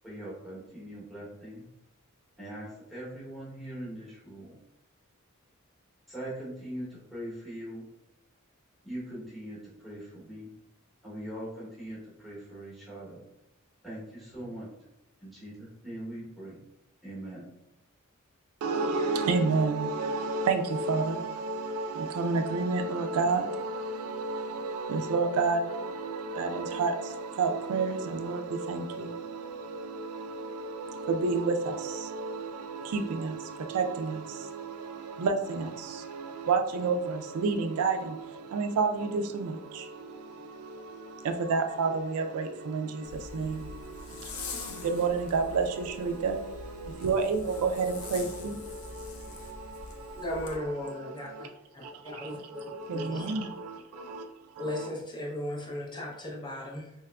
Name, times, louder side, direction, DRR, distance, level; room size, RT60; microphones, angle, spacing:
voice 1, 0.0-1.7 2.4-4.5 6.1-7.8 8.8-10.5 11.0-13.2 13.8-14.7 15.2-16.6 17.0-17.5, right 1 dB, ahead, 0.9 m, -41 dB
voice 2, 18.6-50.3 50.8-51.5 51.8-54.9, right 4 dB, 85° right, 0.3 m, -31 dB
Zipper (clothing), 43.0-50.6, left 4 dB, 75° left, 0.5 m, -44 dB
voice 3, 50.1-51.5 51.7-53.3 54.6-56.9, left 1 dB, 20° left, 0.6 m, -36 dB
3.5 x 2.9 x 2.2 m
head